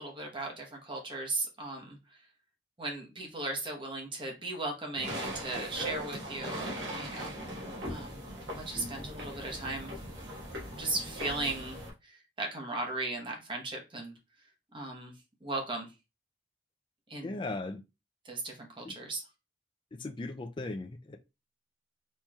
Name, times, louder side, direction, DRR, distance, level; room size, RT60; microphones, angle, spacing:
voice 1, 0.0-2.0 2.8-7.3 7.9-9.9 10.8-14.1 14.7-15.1 15.4-15.9 17.1-17.4 18.2-19.2, right 2 dB, 25° right, 0.9 m, -37 dB
sound 1, 4.9-11.9, equal, 80° right, 1.5 m, -40 dB
voice 2, 17.2-17.8 18.8-19.0 19.9-21.2, left 2 dB, 25° left, 0.4 m, -37 dB
4.2 x 3.0 x 2.3 m
head